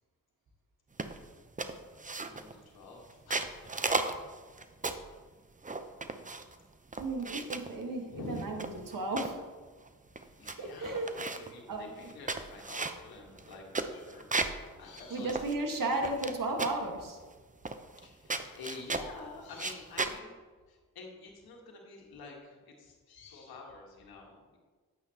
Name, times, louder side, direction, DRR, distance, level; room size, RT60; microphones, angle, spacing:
sound 1, 1.0-1.3 1.6-2.6 3.1-5.1 5.6-6.6 6.9-7.7 8.4-9.4 9.9-10.0 10.2-10.6 10.8-11.5 12.0-14.6 15.0-15.1 15.3-16.3 16.6-16.9 17.7-18.0 18.3-19.1 19.5-20.2, right 3 dB, 20° right, 0.8 m, -35 dB
voice 1, 2.2-4.0 7.3-7.5 8.1-8.5 8.7-8.8 10.2-11.0 11.3-15.7 16.0-16.1 17.9-20.3 20.7-24.6, left 3 dB, 85° left, 0 dB, 1.6 m, -48 dB
voice 2, 7.0-9.4 10.6-11.2 11.7-12.1 15.1-17.2, right 2 dB, 65° right, 3 dB, 1.7 m, -34 dB
10.0 x 8.6 x 2.9 m, 1.4 s
supercardioid pair, 40°, 36 cm